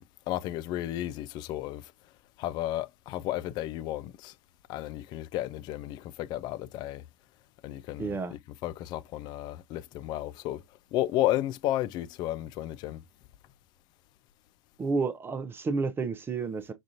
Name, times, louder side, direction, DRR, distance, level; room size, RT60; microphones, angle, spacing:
voice 1, 0.0-1.9 2.4-4.3 4.7-7.0 7.6-10.6 10.9-13.0, left 14 dB, 30° left, 0.3 m, -33 dB
voice 2, 8.0-8.3 14.8-16.7, right 4 dB, 15° right, 0.6 m, -30 dB
6.1 x 2.4 x 2.6 m
figure-of-eight pair, 100°, 15 cm